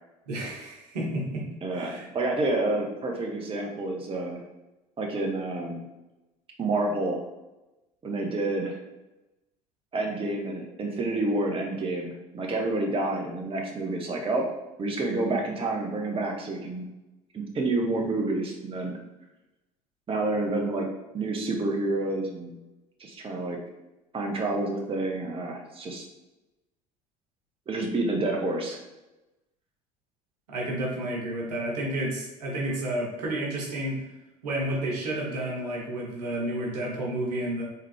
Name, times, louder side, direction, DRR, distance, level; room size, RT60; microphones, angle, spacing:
voice 1, 0.3-1.5 1.7-2.1 30.5-34.0 34.4-37.6, right 1 dB, 85° right, -2 dB, 1.1 m, -31 dB
voice 2, 1.6-4.4 5.0-5.8 6.6-7.2 8.0-8.8 9.9-14.5 14.8-16.9 17.3-19.0 20.1-20.9 21.1-22.6 23.0-23.6 24.1-26.0 27.7-28.8, right 2 dB, 30° right, 1 dB, 0.9 m, -29 dB
3.7 x 3.3 x 3.2 m, 1.0 s
hypercardioid pair, 65°, 20 cm